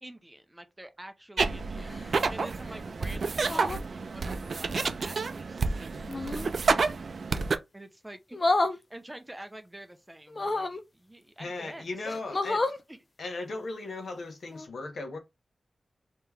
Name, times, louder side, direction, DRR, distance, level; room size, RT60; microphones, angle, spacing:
voice 1, 0.0-1.9 2.3-7.0 7.7-8.4 8.7-11.9 12.9-13.0, right 1 dB, 15° right, 0.6 m, -47 dB
sound 1, 1.4-7.6, right 4 dB, 65° right, 0.4 m, -29 dB
sound 2, 1.8-2.2 3.4-3.9 6.1-6.5 8.3-8.8 10.3-10.8 11.6-11.7 12.0-12.8 14.5-14.7, left 2 dB, 40° left, 0.5 m, -30 dB
voice 2, 11.4-12.7 13.2-15.2, left 2 dB, 70° left, 0.9 m, -37 dB
3.4 x 2.9 x 3.3 m
wide cardioid pair, 80°, 0 cm